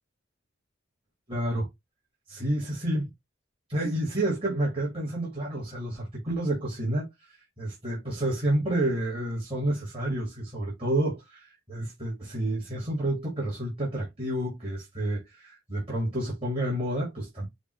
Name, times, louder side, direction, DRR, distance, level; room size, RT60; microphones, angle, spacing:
voice 1, 1.3-1.7 2.3-3.1 3.7-17.4, right 1 dB, 30° right, 1.7 m, -29 dB
5.1 x 2.3 x 3.0 m
head